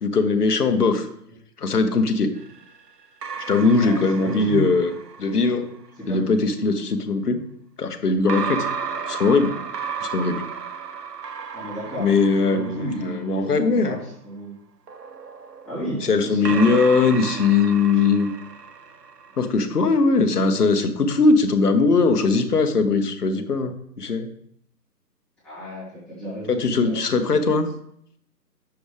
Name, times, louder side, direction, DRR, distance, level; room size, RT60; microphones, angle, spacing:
voice 1, 0.0-1.1 1.6-2.3 3.5-4.9 5.2-5.7 6.1-7.4 7.8-8.6 9.1-9.6 10.0-10.5 12.0-14.0 16.1-18.3 19.4-24.3 26.5-27.7, left 4 dB, 65° left, 8 dB, 1.1 m, -20 dB
sound 1, 2.4-5.8 8.3-13.7 14.9-19.5, right 6 dB, 70° right, 1.0 m, -34 dB
voice 2, 3.8-4.7 6.0-6.2 11.5-12.2 12.5-14.5 15.6-16.8 17.9-18.0 25.4-27.6, right 1 dB, ahead, -15 dB, 2.7 m, -33 dB
7.8 x 7.1 x 3.3 m, 0.70 s
figure-of-eight pair, 160°, 50 cm